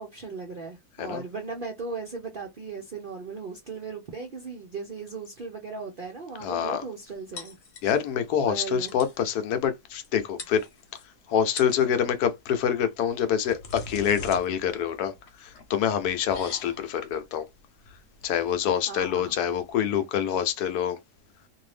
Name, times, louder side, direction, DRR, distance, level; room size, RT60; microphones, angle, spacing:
voice 1, 0.0-7.6 8.5-8.9 18.9-19.3, right 4 dB, 60° right, 0.5 m, -37 dB
voice 2, 6.4-6.8 7.8-10.7 11.3-15.1 15.4-17.4 18.2-21.0, left 8 dB, 75° left, 1.1 m, -26 dB
sound 1, 7.4-8.2 8.5-8.6 8.8-9.2 10.0-10.1 10.4-11.0 11.4-11.9 13.1-19.7, left 3 dB, 50° left, 1.0 m, -43 dB
2.7 x 2.6 x 3.2 m
omnidirectional pair, 1.7 m